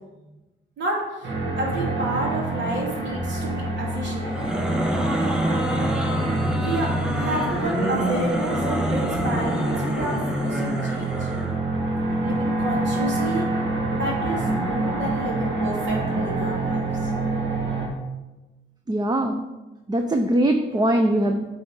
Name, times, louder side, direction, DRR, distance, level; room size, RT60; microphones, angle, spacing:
voice 1, 0.8-4.4 6.6-6.9 7.1-11.3 12.2-13.5 13.9-17.1 20.7-21.0, right 1 dB, 65° right, -3 dB, 2.9 m, -30 dB
sound 1, 1.2-17.9, right 2 dB, 90° right, 2.1 m, -26 dB
sound 2, 4.2-11.6, equal, 5° right, 1.2 m, -27 dB
voice 2, 18.9-19.4 19.9-21.4, right 1 dB, 20° right, 5 dB, 0.6 m, -21 dB
8.4 x 4.2 x 5.3 m, 1.1 s
cardioid pair, 90°, 20 cm